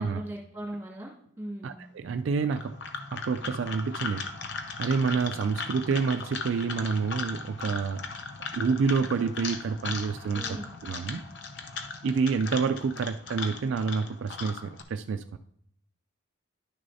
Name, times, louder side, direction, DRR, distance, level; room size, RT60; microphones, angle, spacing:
voice 1, 0.0-1.8 10.3-10.7, right 1 dB, 10° right, -3 dB, 2.1 m, -39 dB
voice 2, 1.6-2.8 3.1-4.3 4.8-8.0 8.5-10.5 10.8-11.2 12.0-15.4, right 5 dB, 60° right, 9 dB, 0.3 m, -28 dB
sound 1, 2.4-14.8, left 4 dB, 55° left, 0.7 m, -38 dB
11.0 x 6.3 x 2.7 m, 0.69 s
head